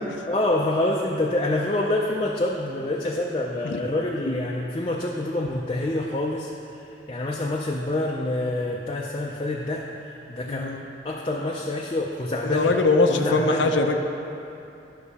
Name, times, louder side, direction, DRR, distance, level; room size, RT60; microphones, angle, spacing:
voice 1, 0.3-10.7 11.0-12.7 13.1-13.7, left 1 dB, 30° left, -1 dB, 0.4 m, -27 dB
voice 2, 10.5-10.8 12.4-14.0, left 3 dB, 85° left, 4 dB, 0.6 m, -22 dB
11.5 x 6.0 x 4.1 m, 2.8 s
head